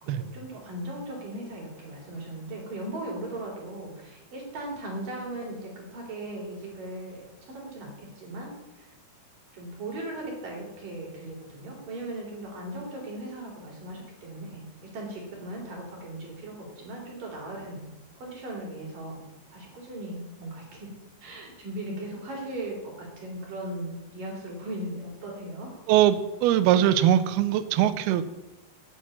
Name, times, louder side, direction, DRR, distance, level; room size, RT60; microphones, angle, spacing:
voice 1, 0.0-8.9 9.5-17.9 18.2-19.2 19.5-20.9 21.2-25.8, right 1 dB, 50° right, -1 dB, 4.7 m, -38 dB
voice 2, 25.9-28.2, right 11 dB, 80° right, 12 dB, 2.4 m, -21 dB
9.3 x 8.6 x 8.6 m, 0.99 s
omnidirectional pair, 5.1 m